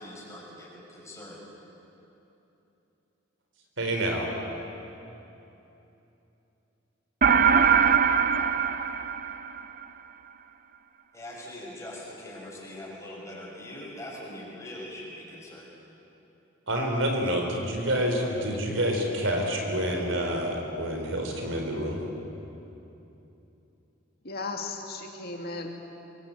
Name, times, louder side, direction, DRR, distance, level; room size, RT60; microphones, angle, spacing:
voice 1, 0.0-1.5 11.1-15.7, left 1 dB, 15° left, -4 dB, 6.8 m, -42 dB
voice 2, 3.8-4.3 16.7-22.0, equal, 75° right, 2 dB, 4.4 m, -28 dB
sound 1, 7.2-9.8, right 7 dB, 45° right, 0.8 m, -22 dB
voice 3, 18.1-18.5 24.2-25.7, left 3 dB, 55° left, 2 dB, 2.3 m, -36 dB
24.5 x 23.0 x 8.8 m, 3.0 s
head